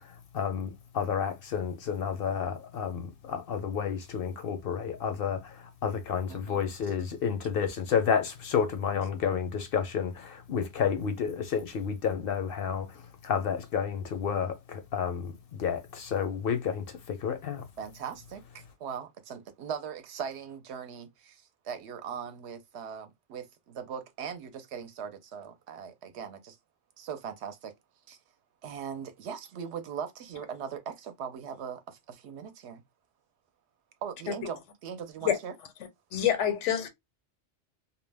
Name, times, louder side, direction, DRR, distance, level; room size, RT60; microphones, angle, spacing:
voice 1, 0.0-17.7, left 7 dB, 60° left, 0.7 m, -31 dB
voice 2, 6.3-6.6 17.8-26.6 27.0-27.7 28.1-28.2 28.6-32.8 34.0-35.5, right 7 dB, 70° right, 0.8 m, -40 dB
voice 3, 36.1-36.9, left 10 dB, 85° left, 0.9 m, -26 dB
2.2 x 2.1 x 3.2 m
omnidirectional pair, 1.2 m